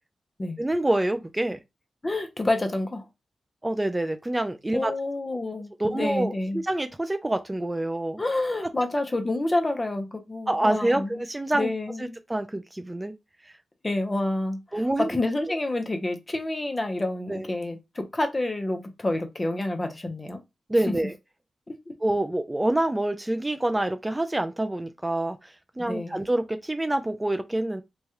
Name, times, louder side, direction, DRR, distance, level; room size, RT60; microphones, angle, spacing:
voice 1, 0.6-1.6 3.6-4.9 5.8-8.2 10.5-11.7 12.0-13.1 13.5-13.6 14.7-15.1 17.3-17.5 20.7-21.1 22.0-27.8, right 1 dB, 15° right, 0.3 m, -26 dB
voice 2, 2.0-3.1 4.7-6.6 8.2-11.2 11.5-12.2 13.8-20.4 20.9-21.0 21.7-21.9 25.8-26.2, left 2 dB, 30° left, 0.7 m, -28 dB
3.1 x 2.3 x 2.8 m
cardioid pair, 65°, 0 cm